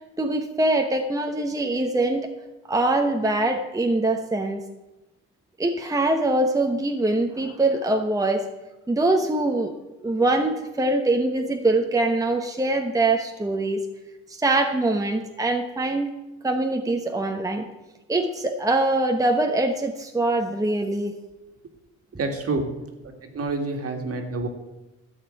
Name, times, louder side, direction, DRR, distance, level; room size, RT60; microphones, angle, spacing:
voice 1, 0.2-2.3 2.7-4.6 5.6-8.4 8.9-9.7 10.0-13.8 14.3-16.1 16.4-17.7 18.1-21.1, right 2 dB, 10° right, 4 dB, 1.0 m, -23 dB
voice 2, 22.2-22.7 23.0-24.5, right 3 dB, 50° right, 4 dB, 2.1 m, -28 dB
13.0 x 5.0 x 9.0 m, 1.0 s
cardioid pair, 90°, 30 cm